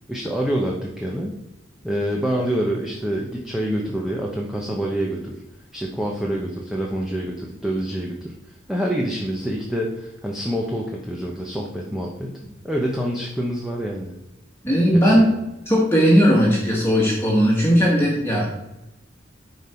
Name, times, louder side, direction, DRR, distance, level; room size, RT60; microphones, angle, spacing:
voice 1, 0.1-1.3 1.8-5.4 5.7-8.3 8.7-12.4 12.6-14.1 14.9-15.3, equal, 5° right, -2 dB, 0.9 m, -26 dB
voice 2, 14.6-15.3 15.6-18.5, equal, 15° left, -4 dB, 1.6 m, -17 dB
10.0 x 5.5 x 4.5 m, 0.94 s
head